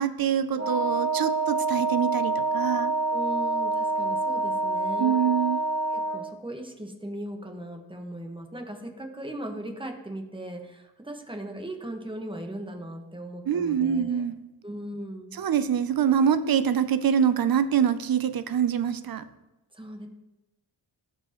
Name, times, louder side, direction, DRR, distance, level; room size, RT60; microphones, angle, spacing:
voice 1, 0.0-2.9 5.0-5.6 13.5-14.3 15.4-19.2, right 8 dB, 50° right, 13 dB, 0.6 m, -25 dB
Wind instrument woodwind instrument, 0.6-6.3, right 2 dB, 30° right, 1.2 m, -27 dB
voice 2, 3.1-5.2 5.9-14.3 14.6-15.4 19.7-20.1, right 1 dB, 10° right, 4 dB, 1.4 m, -38 dB
13.5 x 4.8 x 3.0 m, 0.98 s
cardioid pair, 50°, 48 cm